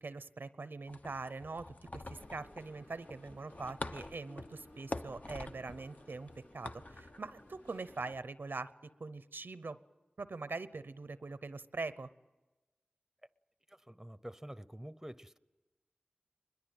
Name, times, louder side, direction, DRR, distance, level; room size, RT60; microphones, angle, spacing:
voice 1, 0.0-9.8 10.2-12.1, right 3 dB, 90° right, 0.7 m, -43 dB
sound 1, 0.9-8.2, left 2 dB, 45° left, 0.8 m, -47 dB
sound 2, 2.1-8.1, left 1 dB, 90° left, 2.9 m, -58 dB
voice 2, 13.7-15.4, right 1 dB, 10° right, 0.7 m, -48 dB
22.0 x 21.5 x 9.1 m
wide cardioid pair, 45°, 3 cm